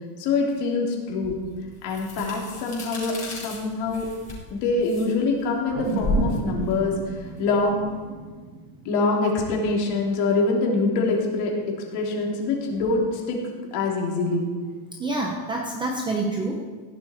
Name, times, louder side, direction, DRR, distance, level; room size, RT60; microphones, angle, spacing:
voice 1, 0.2-1.3 1.8-3.1 3.4-4.1 4.5-7.8 8.8-13.4 13.7-14.5, left 3 dB, 50° left, -1 dB, 3.2 m, -24 dB
sound 1, 1.2-8.0, left 2 dB, 15° left, 4.9 m, -33 dB
sound 2, 5.7-10.2 10.6-10.7, right 4 dB, 30° right, 1.4 m, -33 dB
voice 2, 14.9-16.6, right 2 dB, 10° right, 0 dB, 0.5 m, -27 dB
16.0 x 11.5 x 4.4 m, 1.5 s
supercardioid pair, 170°, 49 cm